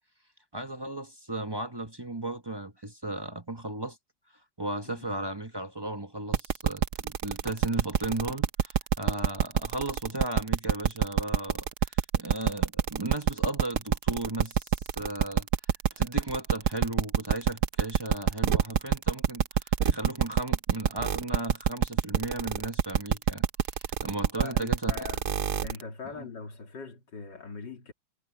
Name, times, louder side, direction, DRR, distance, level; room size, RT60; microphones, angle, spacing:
voice 1, 0.5-4.0 4.6-14.7 15.0-15.5 16.0-19.4 19.8-23.5 24.0-25.1 26.1-26.3, right 2 dB, 15° right, 0.9 m, -35 dB
sound 1, 6.3-25.8, right 9 dB, 55° right, 1.1 m, -25 dB
voice 2, 24.4-25.3 25.6-27.9, left 5 dB, 85° left, 3.4 m, -41 dB
omnidirectional pair, 1.9 m